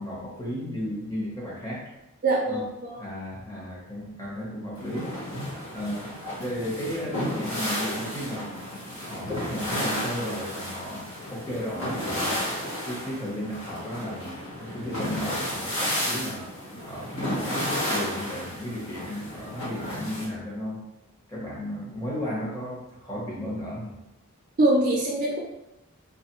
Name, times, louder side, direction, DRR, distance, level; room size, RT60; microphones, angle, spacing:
voice 1, 0.0-1.9 2.5-2.6 2.9-5.1 5.7-6.1 6.3-8.6 9.0-12.4 12.8-20.8 21.3-24.0, equal, 15° left, -6 dB, 0.8 m, -34 dB
voice 2, 2.2-3.0 24.6-25.4, right 2 dB, 35° right, -3 dB, 0.4 m, -23 dB
sound 1, 4.8-20.3, left 1 dB, 80° left, 1.2 m, -32 dB
2.6 x 2.3 x 2.9 m, 0.89 s
head